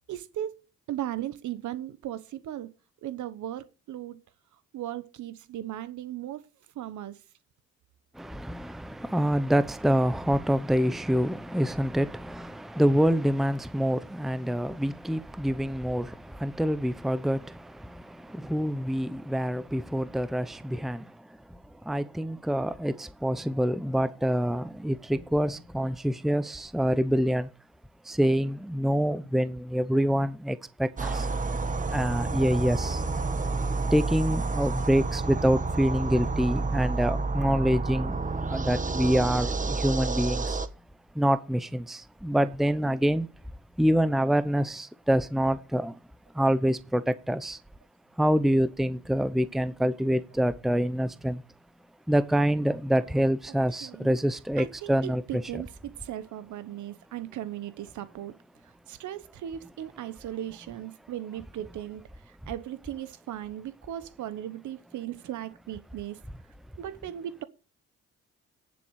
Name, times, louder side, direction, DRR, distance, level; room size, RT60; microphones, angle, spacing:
voice 1, 0.1-0.6 0.9-2.7 3.0-4.2 4.7-6.4 6.8-7.2 53.8-54.2 54.6-58.3 58.9-62.0 62.5-66.2 66.8-67.4, right 12 dB, 75° right, 1.1 m, -37 dB
voice 2, 8.1-27.5 28.0-31.3 31.9-33.0 33.9-38.2 38.5-40.6 41.1-43.3 43.8-46.0 46.3-47.6 48.2-51.4 52.1-55.6, equal, ahead, 0.8 m, -26 dB
sound 1, 31.0-40.7, right 3 dB, 25° right, 1.3 m, -29 dB
10.5 x 7.2 x 6.4 m
cardioid pair, 90°, 30 cm